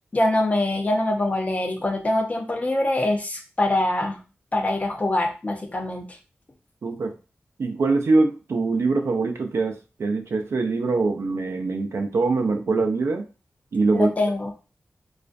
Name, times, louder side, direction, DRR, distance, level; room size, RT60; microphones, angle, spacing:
voice 1, 0.1-4.2 4.5-6.2 13.9-14.5, left 1 dB, 30° left, 3 dB, 0.5 m, -24 dB
voice 2, 6.8-7.2 7.6-13.3 13.7-14.1, right 3 dB, 75° right, 4 dB, 0.4 m, -23 dB
2.3 x 2.1 x 2.5 m, 0.33 s
wide cardioid pair, 90°, 5 cm